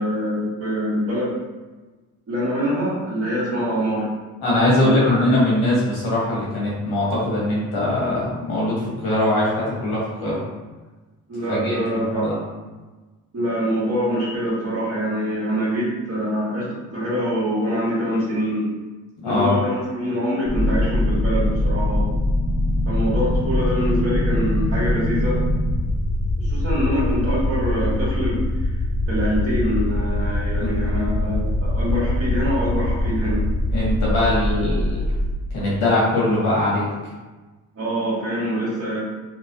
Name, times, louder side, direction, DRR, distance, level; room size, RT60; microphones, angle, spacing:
voice 1, 0.0-1.4 2.3-4.1 4.8-5.2 11.3-12.3 13.3-18.7 19.2-22.0 22.8-25.4 26.4-28.7 29.1-33.4 37.7-39.0, equal, 40° right, -10 dB, 1.5 m, -24 dB
voice 2, 4.4-10.4 11.5-12.4 19.2-19.5 30.6-30.7 33.7-35.0 35.5-36.9, left 1 dB, 85° left, -6 dB, 1.5 m, -21 dB
sound 1, 20.5-35.3, left 1 dB, 15° left, 1.1 m, -22 dB
3.0 x 3.0 x 2.8 m, 1.2 s
supercardioid pair, 70°, 37 cm